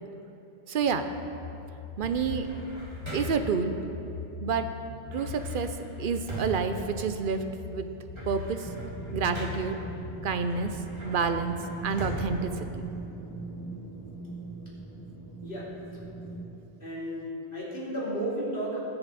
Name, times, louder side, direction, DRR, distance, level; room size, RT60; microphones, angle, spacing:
voice 1, 0.7-1.0 2.0-2.5 3.1-3.7 4.4-4.7 5.1-7.4 7.7-7.9 8.3-8.7 9.1-9.8 10.2-10.7 11.0-11.6 11.8-12.9, right 5 dB, 60° right, 9 dB, 0.8 m, -29 dB
sound 1, 0.8-11.5, left 7 dB, 80° left, 1.1 m, -41 dB
sound 2, 2.0-3.6 5.1-7.6 7.9-9.9 10.4-13.4, right 1 dB, 25° right, 2.1 m, -40 dB
sound 3, 8.7-16.4, right 3 dB, 15° left, 1.2 m, -41 dB
voice 2, 16.8-18.8, right 1 dB, 60° left, -8 dB, 3.3 m, -33 dB
20.0 x 7.0 x 4.2 m, 3.0 s
omnidirectional pair, 1.1 m